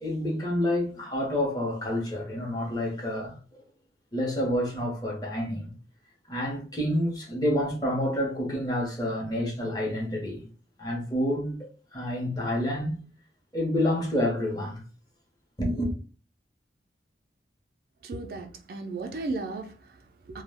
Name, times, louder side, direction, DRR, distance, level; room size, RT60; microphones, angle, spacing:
voice 1, 0.0-3.4 4.1-5.7 6.3-10.4 10.8-13.0 13.5-14.8 15.6-15.9, left 1 dB, 20° left, 0.7 m, -28 dB
voice 2, 18.0-20.4, right 3 dB, 55° right, 0.4 m, -35 dB
2.2 x 2.1 x 3.3 m
head